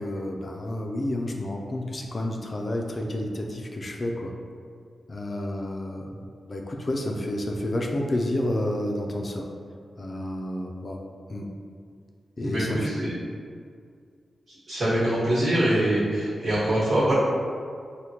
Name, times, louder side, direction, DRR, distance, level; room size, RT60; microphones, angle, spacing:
voice 1, 0.0-4.3 5.1-6.2 6.5-9.5 10.0-11.0 11.3-11.5 12.4-13.0, left 1 dB, 45° left, 1 dB, 0.4 m, -30 dB
voice 2, 14.7-17.1, right 1 dB, 60° right, -12 dB, 1.3 m, -23 dB
3.4 x 2.1 x 2.8 m, 2.1 s
cardioid pair, 65°, 0 cm